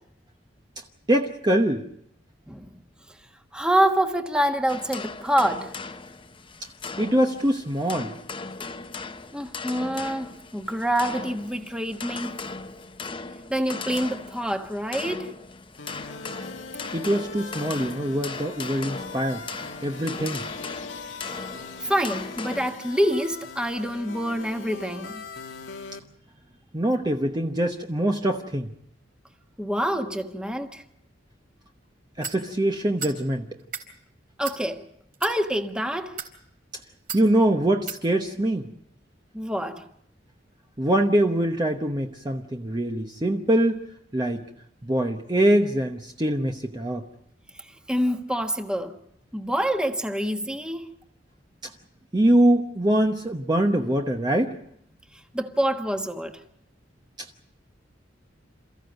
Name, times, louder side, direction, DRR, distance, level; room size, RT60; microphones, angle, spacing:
voice 1, 1.1-1.9 7.0-8.2 16.9-19.4 19.8-20.4 26.7-28.7 32.2-33.5 37.1-38.6 40.8-43.8 44.1-44.4 44.8-47.0 52.1-54.6, right 1 dB, 25° right, 1.0 m, -23 dB
voice 2, 3.5-5.7 9.3-12.5 13.5-15.3 21.8-25.2 29.6-30.8 34.4-34.9 35.2-36.2 39.3-39.8 47.9-49.0 49.3-50.9 55.3-56.3, equal, 5° right, 1.4 m, -26 dB
sound 1, 4.7-22.7, left 4 dB, 30° left, 0.9 m, -38 dB
sound 2, 15.8-26.0, left 4 dB, 90° left, 1.6 m, -40 dB
sound 3, 32.2-32.4 33.0-33.2 33.6-33.9 34.4-34.6 35.1-35.3 36.0-36.3 37.1-37.2 37.9-38.0, right 6 dB, 50° right, 3.8 m, -34 dB
28.5 x 14.5 x 8.0 m
head